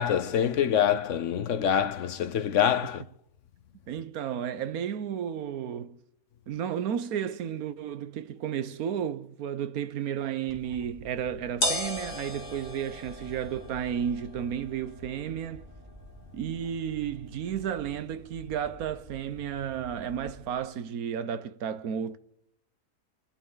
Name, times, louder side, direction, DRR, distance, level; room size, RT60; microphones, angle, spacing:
voice 1, 0.0-3.0, left 9 dB, 65° left, 1.1 m, -25 dB
voice 2, 3.9-6.0 6.5-15.6 16.3-22.2, right 8 dB, 90° right, 1.3 m, -33 dB
sound 1, 10.5-20.5, left 1 dB, 40° left, 2.6 m, -39 dB
27.5 x 11.5 x 3.9 m
omnidirectional pair, 1.5 m